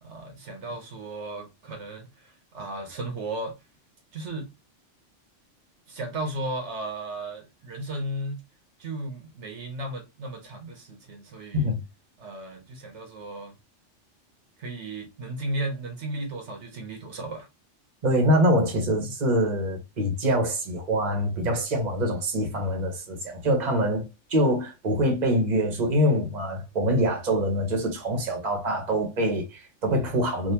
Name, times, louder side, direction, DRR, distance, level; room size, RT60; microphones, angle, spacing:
voice 1, 0.0-3.6 4.1-4.5 5.9-8.4 8.8-11.7 12.2-13.5 14.6-17.5, right 1 dB, 70° right, 1.1 m, -35 dB
voice 2, 18.0-24.0 24.3-30.5, equal, 40° right, 1.0 m, -24 dB
3.5 x 2.6 x 2.8 m
omnidirectional pair, 1.3 m